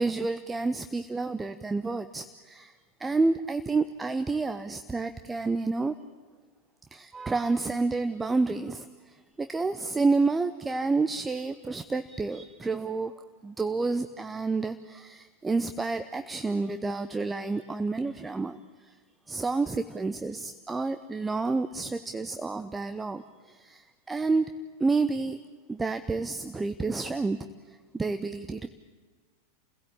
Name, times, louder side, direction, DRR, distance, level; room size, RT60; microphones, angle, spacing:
voice 1, 0.0-2.7 3.0-5.9 6.9-13.1 13.4-18.9 19.3-24.5 24.8-25.4 25.7-27.4 27.9-28.7, right 3 dB, 10° right, 10 dB, 0.7 m, -29 dB
29.5 x 16.5 x 8.7 m, 1.5 s
figure-of-eight pair, 90°, 0 cm